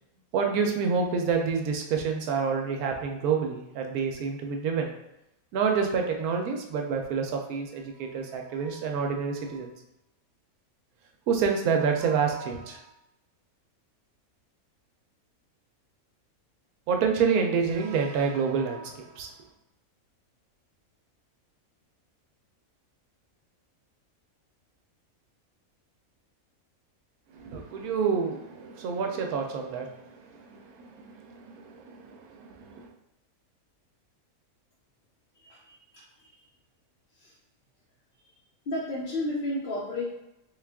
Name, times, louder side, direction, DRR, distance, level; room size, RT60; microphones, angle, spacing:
voice 1, 0.3-4.9 5.5-9.7 11.3-12.9 16.9-19.3 27.3-32.9, right 6 dB, 90° right, 2 dB, 1.1 m, -28 dB
voice 2, 35.4-36.3 37.2-37.4 38.7-40.1, left 1 dB, 50° left, -6 dB, 0.7 m, -33 dB
3.6 x 2.4 x 3.4 m, 0.89 s
omnidirectional pair, 1.5 m